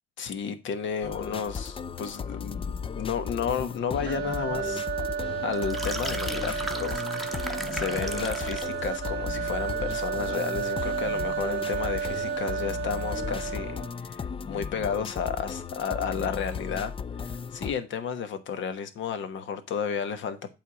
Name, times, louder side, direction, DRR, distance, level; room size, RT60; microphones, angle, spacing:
voice 1, 0.2-4.9 5.4-16.9 17.2-20.4, left 7 dB, 70° left, 1.2 m, -32 dB
sound 1, 1.0-17.7, left 6 dB, 25° left, 0.4 m, -36 dB
sound 2, 4.1-14.0, right 7 dB, 60° right, 0.5 m, -32 dB
sound 3, 5.5-8.8, right 1 dB, ahead, 1.0 m, -36 dB
8.4 x 3.5 x 6.1 m
cardioid pair, 90°, 20 cm